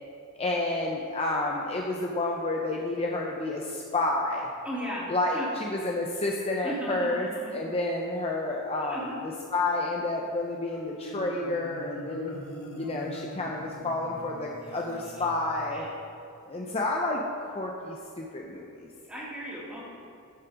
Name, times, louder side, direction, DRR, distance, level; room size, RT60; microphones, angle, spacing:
voice 1, 0.4-4.5 5.1-9.2 9.5-12.3 12.8-15.9 16.5-18.9, left 2 dB, 30° left, -1 dB, 0.7 m, -30 dB
voice 2, 4.6-5.5 6.6-7.6 8.8-9.3 14.6-14.7 15.1-15.2 15.7-16.0 19.1-20.0, equal, 5° right, -7 dB, 2.5 m, -37 dB
Marimba xylophone, 10.7-15.8, right 1 dB, 70° left, 1.8 m, -43 dB
10.0 x 7.3 x 5.0 m, 2.5 s
head